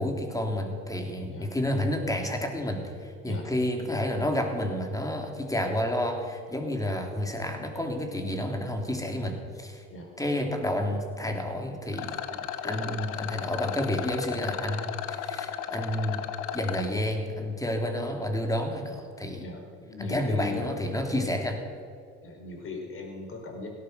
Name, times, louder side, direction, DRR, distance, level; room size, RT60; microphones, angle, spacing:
voice 1, 0.0-9.8 10.2-12.1 12.6-16.3 16.5-19.5 20.0-21.6, left 1 dB, 10° left, 3 dB, 3.1 m, -30 dB
Rattle, 11.9-16.9, left 10 dB, 60° left, 1.2 m, -35 dB
voice 2, 12.3-13.0 16.7-17.0 19.4-20.6 21.1-21.3 22.2-23.7, left 3 dB, 35° left, 2 dB, 5.1 m, -39 dB
17.0 x 12.5 x 6.7 m, 2.2 s
hypercardioid pair, 70°, 35 cm